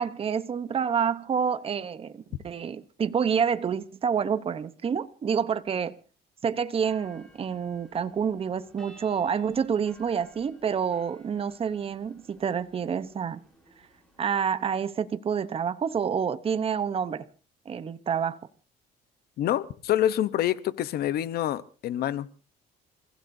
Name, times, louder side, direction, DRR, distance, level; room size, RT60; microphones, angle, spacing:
voice 1, 0.0-6.0 6.4-13.4 14.2-17.3 17.6-18.4, right 7 dB, 35° right, 0.9 m, -28 dB
sound 1, 6.8-14.2, equal, 5° left, 6.8 m, -57 dB
voice 2, 19.4-22.4, left 12 dB, 65° left, 0.9 m, -27 dB
28.5 x 15.5 x 2.7 m
cardioid pair, 110°, 17 cm